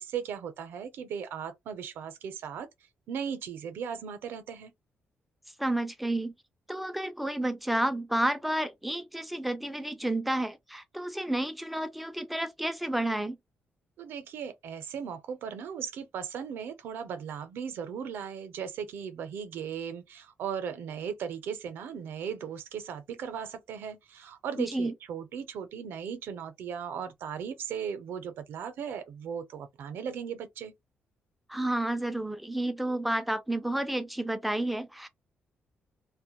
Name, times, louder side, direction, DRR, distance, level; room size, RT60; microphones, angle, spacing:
voice 1, 0.0-2.7 3.1-4.7 14.0-30.7, right 7 dB, 75° right, 0.5 m, -37 dB
voice 2, 5.6-6.3 6.7-13.4 24.6-24.9 31.5-35.1, right 1 dB, ahead, 0.3 m, -30 dB
2.1 x 2.1 x 2.9 m
wide cardioid pair, 180°, 4 cm